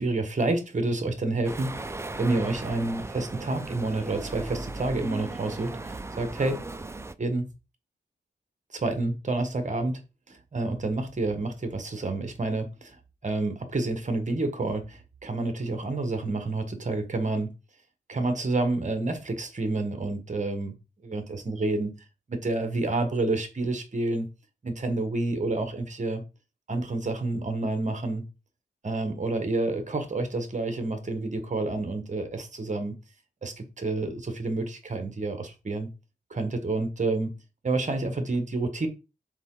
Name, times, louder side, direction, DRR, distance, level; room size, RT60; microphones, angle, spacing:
voice 1, 0.0-1.9 2.2-6.6 7.2-7.5 8.7-10.0 10.3-17.5 18.1-20.7 21.0-21.9 22.3-24.3 24.6-26.2 26.7-28.2 28.8-32.9 33.4-35.9 36.3-37.3 37.6-38.9, right 2 dB, 40° right, 1.4 m, -29 dB
sound 1, 1.4-7.1, right 2 dB, 15° right, 0.4 m, -37 dB
7.3 x 4.0 x 3.8 m
wide cardioid pair, 145°, 19 cm